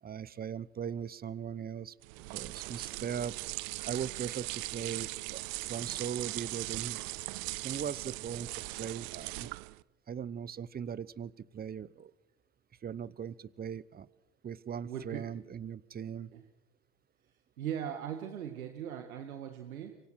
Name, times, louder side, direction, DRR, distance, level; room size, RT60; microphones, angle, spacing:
voice 1, 0.0-3.3 3.8-7.0 7.6-9.5 10.1-12.1 12.8-14.1 14.4-16.3, right 8 dB, 20° right, 21 dB, 0.8 m, -39 dB
sound 1, 2.0-9.8, right 25 dB, 60° right, 0.8 m, -39 dB
voice 2, 14.8-15.2 16.3-16.4 17.6-20.0, right 9 dB, 90° right, 6 dB, 2.0 m, -39 dB
26.0 x 24.5 x 6.3 m, 0.97 s
hypercardioid pair, 90°, 41 cm